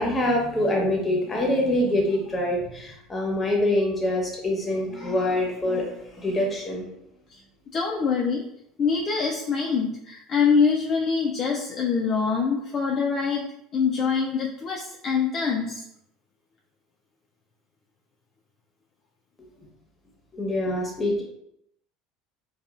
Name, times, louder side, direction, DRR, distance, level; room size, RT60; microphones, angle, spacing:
voice 1, 0.0-6.9 20.3-21.2, left 1 dB, 25° left, 0 dB, 0.9 m, -25 dB
voice 2, 7.7-8.4 8.8-13.4 13.7-15.8, left 5 dB, 40° left, -1 dB, 0.4 m, -24 dB
2.9 x 2.3 x 2.4 m, 0.76 s
hypercardioid pair, 80°, 0 cm